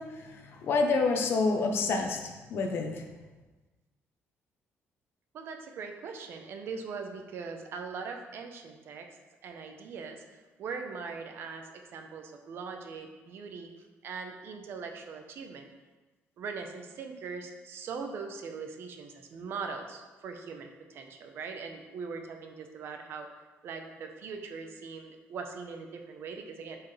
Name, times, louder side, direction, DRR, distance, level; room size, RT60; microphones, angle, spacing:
voice 1, 0.0-3.1, left 3 dB, 55° left, 4 dB, 0.9 m, -28 dB
voice 2, 5.3-9.2 9.4-10.2 10.6-13.7 14.0-15.7 16.4-23.3 23.6-26.8, right 5 dB, 60° right, 4 dB, 0.9 m, -41 dB
9.6 x 4.7 x 3.3 m, 1.2 s
cardioid pair, 160°, 5 cm